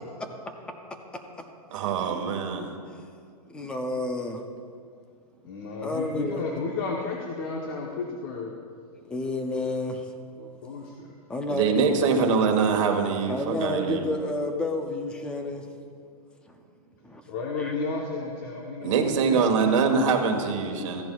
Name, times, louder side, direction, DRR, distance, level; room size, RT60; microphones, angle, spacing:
voice 1, 1.7-2.7 11.5-14.1 18.8-21.0, right 5 dB, 50° right, 3 dB, 1.4 m, -24 dB
voice 2, 3.5-4.4 5.8-6.4 9.0-10.0 11.3-12.1 13.3-15.6 16.5-16.6 17.0-17.2 17.6-17.7, left 2 dB, 5° left, 5 dB, 0.4 m, -30 dB
voice 3, 5.4-8.5 10.4-11.1 17.3-19.8, left 4 dB, 40° left, -1 dB, 0.9 m, -33 dB
14.5 x 10.5 x 2.3 m, 2.2 s
hypercardioid pair, 165°, 20 cm